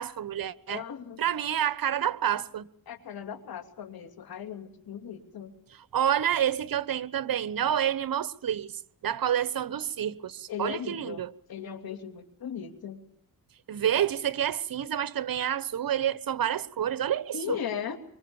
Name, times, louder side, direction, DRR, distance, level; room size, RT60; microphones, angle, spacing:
voice 1, 0.0-0.8 1.2-2.7 5.9-11.3 13.7-17.6, right 10 dB, 65° right, 1.2 m, -28 dB
voice 2, 0.7-1.2 2.9-5.5 10.5-11.2 11.5-13.0 17.3-18.0, left 8 dB, 75° left, 3.2 m, -37 dB
24.5 x 24.5 x 7.2 m
cardioid pair, 85°, 37 cm